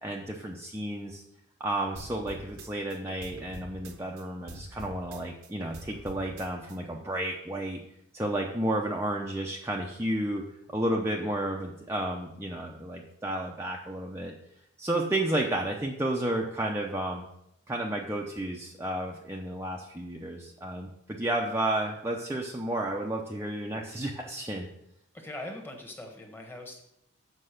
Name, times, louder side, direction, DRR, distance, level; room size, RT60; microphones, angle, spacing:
voice 1, 0.0-1.2 1.6-7.8 8.1-10.4 10.7-14.3 14.8-17.2 17.7-24.7, right 1 dB, 10° right, -1 dB, 0.7 m, -32 dB
sound 1, 2.0-4.2 4.5-6.8, right 1 dB, 90° right, 1.1 m, -45 dB
voice 2, 25.1-26.8, left 1 dB, 10° left, 3 dB, 1.3 m, -41 dB
7.7 x 5.3 x 6.6 m, 0.79 s
head